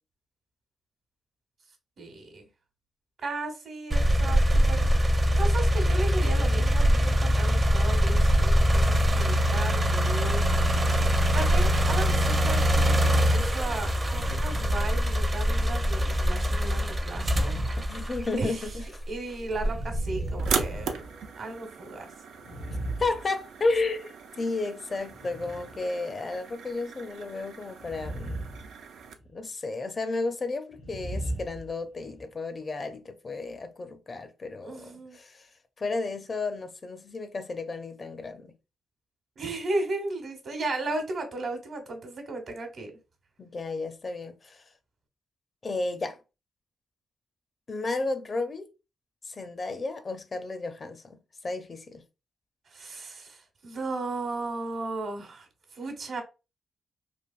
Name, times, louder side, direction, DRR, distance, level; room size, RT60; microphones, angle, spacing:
voice 1, 2.0-2.4 3.2-10.4 11.3-17.6 18.4-18.7 19.1-21.1 21.3-22.1 34.6-35.2 39.4-42.9 52.7-55.5 55.7-56.2, right 2 dB, 60° right, 1.1 m, -35 dB
sound 1, 3.9-18.9 19.5-20.7, equal, 25° right, 0.5 m, -23 dB
sound 2, 14.0-15.6 17.1-18.6 19.5-21.6 22.3-23.9 25.0-25.8 27.8-28.7 29.0-29.3 30.7-32.3, right 1 dB, 75° left, 1.0 m, -36 dB
voice 2, 17.8-19.0 23.0-28.5 29.3-35.5 35.8-38.5 43.4-44.6 45.6-46.2 47.7-48.6 49.3-52.0, left 3 dB, 40° left, 0.5 m, -33 dB
sound 3, 20.4-29.1, right 6 dB, 85° right, 0.4 m, -38 dB
3.2 x 2.5 x 2.4 m
cardioid pair, 75°, 0 cm